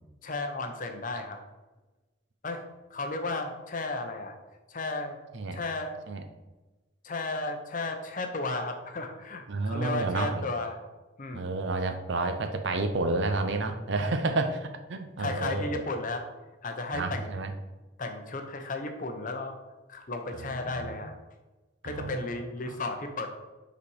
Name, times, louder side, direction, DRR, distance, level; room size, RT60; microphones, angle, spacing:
voice 1, 0.2-1.4 2.4-2.6 2.9-4.3 4.7-5.2 5.5-5.9 7.0-10.8 11.2-11.6 15.2-16.2 16.6-17.3 18.0-19.6 19.9-21.1 21.8-23.3, left 2 dB, 40° left, 5 dB, 0.7 m, -34 dB
voice 2, 9.5-10.5 11.3-15.8 16.9-17.5 20.6-21.0 21.8-22.3 22.6-22.7, right 2 dB, 55° right, 6 dB, 0.6 m, -30 dB
5.6 x 4.2 x 4.7 m, 1.2 s
head